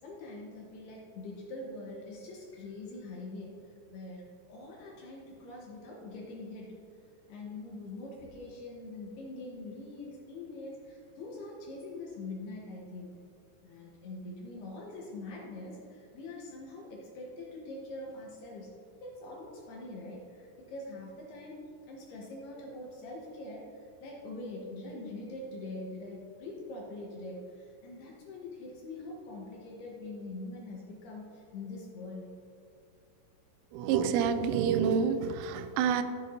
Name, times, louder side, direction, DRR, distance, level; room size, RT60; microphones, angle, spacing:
voice 1, 0.0-3.6 3.9-6.7 7.3-13.1 13.6-18.7 19.0-32.4, left 2 dB, 75° left, -2 dB, 2.6 m, -43 dB
voice 2, 33.7-36.0, right 7 dB, 90° right, 10 dB, 3.1 m, -28 dB
13.0 x 8.0 x 2.7 m, 2.5 s
omnidirectional pair, 5.5 m